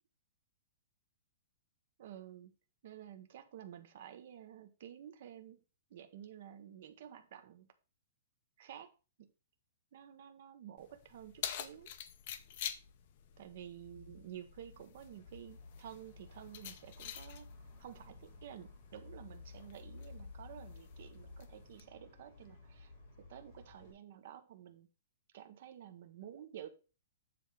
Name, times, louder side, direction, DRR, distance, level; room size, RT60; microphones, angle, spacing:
voice 1, 2.0-2.5 2.8-5.6 5.9-7.7 8.6-9.3 9.9-11.9 13.4-17.5 17.8-22.9 23.2-24.9 25.3-26.7, right 10 dB, 45° right, 0.9 m, -51 dB
Keys jangling, 10.8-21.8, left 9 dB, 40° left, 0.6 m, -49 dB
sound 1, 15.1-23.9, left 3 dB, 15° left, 2.8 m, -55 dB
7.7 x 3.6 x 6.1 m
hypercardioid pair, 175°, 0 cm